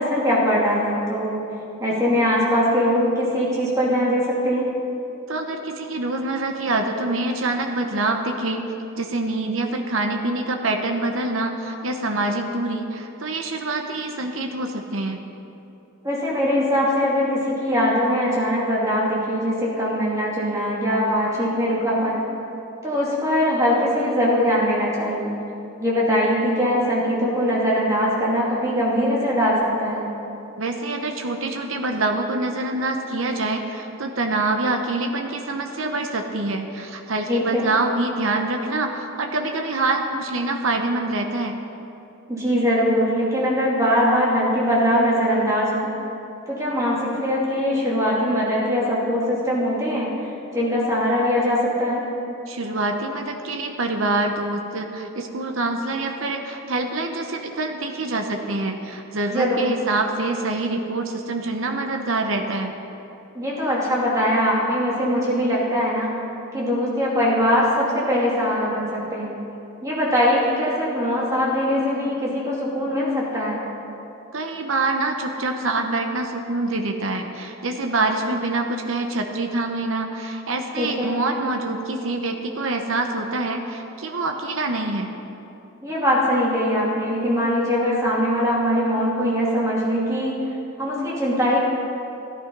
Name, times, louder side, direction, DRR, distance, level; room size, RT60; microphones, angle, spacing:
voice 1, 0.0-1.4 1.8-4.7 16.0-22.2 22.8-25.3 25.8-30.1 37.3-37.7 42.3-45.9 46.5-52.0 59.3-59.7 63.3-66.2 66.5-69.3 69.8-73.6 80.8-81.1 85.8-90.4 90.8-91.6, equal, 15° right, -6 dB, 2.7 m, -21 dB
voice 2, 5.3-8.6 8.9-15.2 30.6-41.6 52.5-62.7 74.3-85.1, right 2 dB, 75° right, 4 dB, 0.9 m, -25 dB
13.5 x 12.0 x 5.3 m, 2.9 s
head